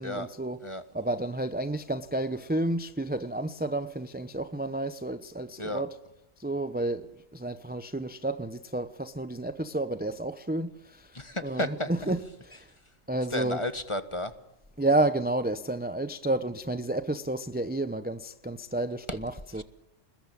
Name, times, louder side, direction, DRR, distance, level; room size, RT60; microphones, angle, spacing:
voice 1, 0.0-0.6 0.9-5.9 6.4-12.7 13.1-13.6 14.8-19.6, right 2 dB, 10° right, 0.8 m, -31 dB
voice 2, 11.1-12.1 13.3-14.3 19.1-19.2 19.5-19.6, left 1 dB, 25° left, 1.6 m, -32 dB
28.0 x 21.0 x 8.8 m
omnidirectional pair, 1.3 m